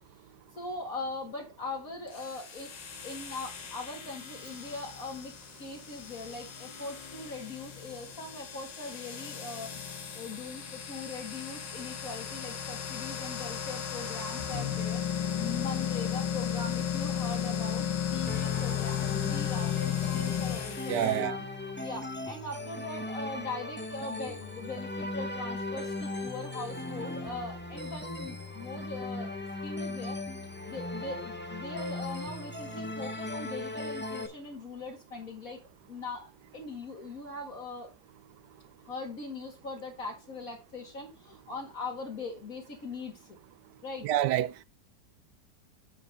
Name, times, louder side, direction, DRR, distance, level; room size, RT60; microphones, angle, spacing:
voice 1, 0.5-2.7 3.0-5.3 5.6-21.3 21.8-30.2 30.7-35.6 35.9-37.9 38.9-43.4 43.8-44.1, left 3 dB, 50° left, 2.3 m, -41 dB
sound 1, 2.1-21.2, left 9 dB, 85° left, 2.1 m, -35 dB
sound 2, 18.3-34.3, left 2 dB, 10° left, 0.9 m, -38 dB
voice 2, 20.9-21.4 44.0-44.6, right 12 dB, 75° right, 1.2 m, -28 dB
8.2 x 5.2 x 5.3 m
omnidirectional pair, 1.9 m